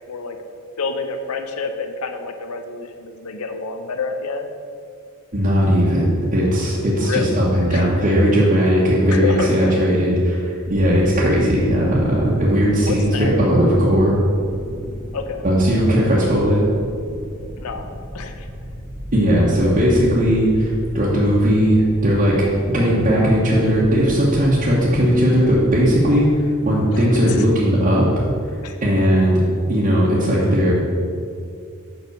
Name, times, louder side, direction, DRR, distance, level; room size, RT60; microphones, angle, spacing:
voice 1, 0.8-4.5 7.0-7.3 7.7-7.8 9.1-9.8 12.8-13.4 13.9-14.0 15.1-15.4 17.6-17.9 18.1-18.5 26.9-27.4 28.6-28.8, left 4 dB, 90° left, 6 dB, 0.6 m, -28 dB
voice 2, 5.3-14.2 15.4-16.6 19.1-28.1 28.8-29.4 29.7-30.7, equal, 35° right, -7 dB, 1.1 m, -17 dB
sound 1, 13.7-26.4, equal, 15° left, 1.3 m, -36 dB
5.4 x 5.2 x 6.5 m, 2.4 s
head